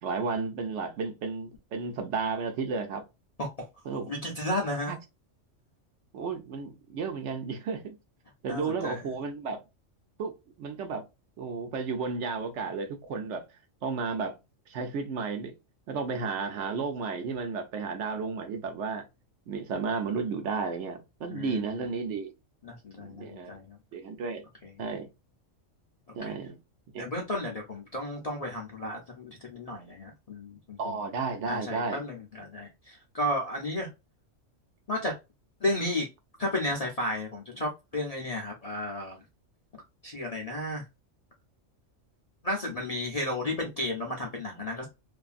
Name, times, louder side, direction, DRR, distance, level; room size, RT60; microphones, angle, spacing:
voice 1, 0.0-3.0 3.9-4.1 4.9-5.0 6.1-8.0 8.4-9.6 10.2-11.0 11.4-13.4 13.8-14.3 14.7-15.5 15.9-19.0 19.5-22.3 23.0-23.6 23.9-24.4 24.8-25.1 26.1-26.6 26.9-27.1 30.8-32.0, right 4 dB, 70° right, 0.9 m, -33 dB
voice 2, 4.1-4.9 8.5-9.0 21.3-21.6 22.6-23.8 26.1-26.3 27.0-31.0 31.4-33.9 34.9-35.2 35.6-36.1 36.4-39.2 40.0-40.8 42.4-44.9, left 1 dB, 45° left, 0.5 m, -33 dB
2.6 x 2.4 x 2.4 m
omnidirectional pair, 1.3 m